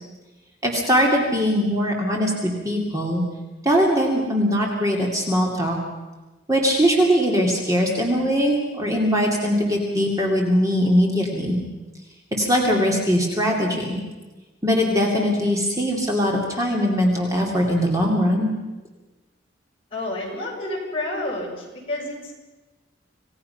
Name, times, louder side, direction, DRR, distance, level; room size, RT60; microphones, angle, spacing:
voice 1, 0.6-3.2 3.6-5.8 6.5-11.6 12.3-14.0 14.6-18.5, equal, 20° right, -1 dB, 2.5 m, -21 dB
voice 2, 19.9-22.3, left 2 dB, 30° left, -3 dB, 6.2 m, -29 dB
27.0 x 17.5 x 5.8 m, 1.2 s
head